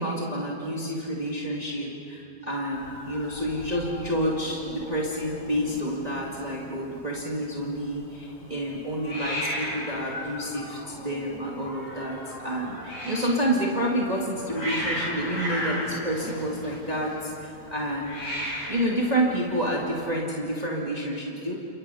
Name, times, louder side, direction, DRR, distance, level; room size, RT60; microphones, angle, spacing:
voice 1, 0.0-18.2 18.7-21.5, equal, 20° right, -3 dB, 1.2 m, -29 dB
Hiss, 2.7-20.1, equal, 40° left, 8.0 m, -36 dB
29.5 x 29.5 x 5.6 m, 2.9 s
omnidirectional pair, 4.0 m